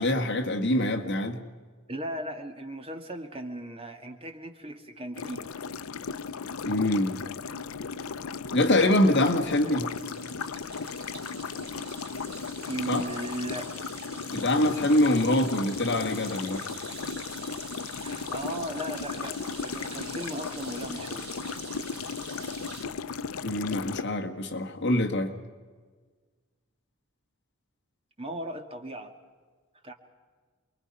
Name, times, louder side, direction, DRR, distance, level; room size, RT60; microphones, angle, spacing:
voice 1, 0.0-1.4 6.6-7.2 8.5-9.9 12.9-13.0 14.3-16.6 23.4-25.3, left 1 dB, 50° left, 4 dB, 1.9 m, -24 dB
voice 2, 1.9-5.5 12.6-13.7 18.0-21.3 28.2-29.1 29.8-29.9, right 1 dB, 25° right, 5 dB, 1.8 m, -36 dB
sound 1, 5.2-24.0, left 5 dB, 75° left, 0.6 m, -36 dB
sound 2, 8.6-22.8, right 4 dB, 45° right, 6.1 m, -46 dB
28.5 x 22.0 x 5.6 m, 1.5 s
head